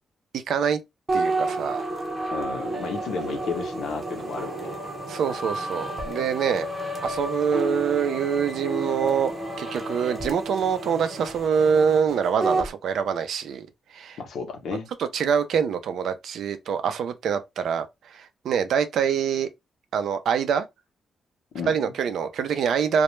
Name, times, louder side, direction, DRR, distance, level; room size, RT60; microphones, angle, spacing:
voice 1, 0.3-0.8 1.1-1.8 5.1-6.7 7.0-9.3 9.6-13.7 13.9-14.2 15.1-19.5 19.9-20.7 21.7-23.0, right 7 dB, 75° right, 0.4 m, -25 dB
sound 1, 1.1-12.7, right 2 dB, 20° right, 0.8 m, -31 dB
voice 2, 2.3-4.7 14.2-14.9 21.5-21.9, left 5 dB, 75° left, 0.7 m, -32 dB
2.1 x 2.0 x 3.0 m
cardioid pair, 130°, 0 cm